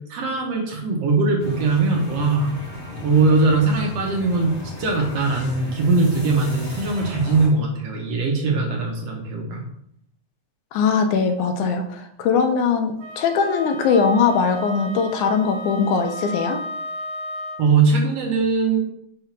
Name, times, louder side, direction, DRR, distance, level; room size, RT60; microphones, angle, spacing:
voice 1, 0.1-2.5 3.0-9.6 17.6-18.8, right 3 dB, 65° right, 0 dB, 1.9 m, -20 dB
sound 1, 1.4-7.5, left 1 dB, 35° left, 1.1 m, -34 dB
voice 2, 10.7-16.6, left 5 dB, 85° left, 7 dB, 2.1 m, -21 dB
Wind instrument woodwind instrument, 13.0-17.7, equal, 85° right, 2.2 m, -33 dB
5.6 x 3.7 x 5.8 m, 0.72 s
omnidirectional pair, 3.5 m